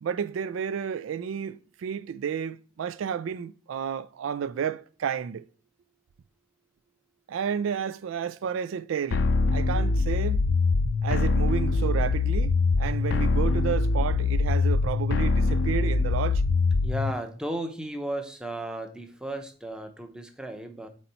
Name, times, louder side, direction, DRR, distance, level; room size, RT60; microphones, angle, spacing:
voice 1, 0.0-5.4 7.3-9.3 9.5-10.4 11.0-16.4, right 7 dB, 85° right, 0.3 m, -31 dB
sound 1, 9.1-17.1, left 3 dB, 60° left, 0.4 m, -23 dB
voice 2, 16.8-20.9, right 1 dB, 5° right, 0.7 m, -35 dB
4.2 x 4.2 x 5.4 m
head